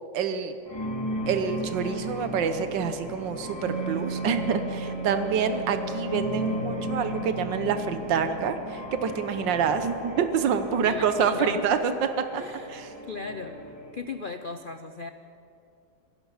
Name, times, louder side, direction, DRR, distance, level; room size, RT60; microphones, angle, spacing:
voice 1, 0.1-0.6 1.3-11.9 12.3-12.4 12.7-12.9, right 6 dB, 85° right, 9 dB, 1.7 m, -27 dB
sound 1, 0.7-13.9, left 1 dB, 15° left, 2.3 m, -36 dB
Wind instrument woodwind instrument, 3.7-9.0, right 2 dB, 40° right, 1.9 m, -35 dB
voice 2, 10.7-11.8 12.3-12.8 13.1-13.6 13.9-15.1, left 4 dB, 65° left, 8 dB, 0.5 m, -37 dB
27.0 x 17.5 x 5.7 m, 2.7 s
omnidirectional pair, 1.9 m